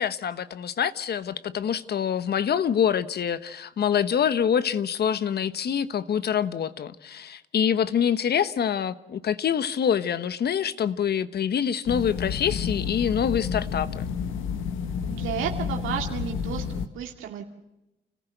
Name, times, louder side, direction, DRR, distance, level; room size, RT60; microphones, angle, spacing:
voice 1, 0.0-14.1, left 8 dB, 55° left, 14 dB, 1.2 m, -25 dB
sound 1, 11.9-16.9, left 6 dB, 85° left, 1.4 m, -30 dB
voice 2, 15.1-17.4, right 9 dB, 90° right, 2 dB, 2.4 m, -32 dB
29.5 x 15.0 x 8.0 m, 0.94 s
cardioid pair, 90°, 20 cm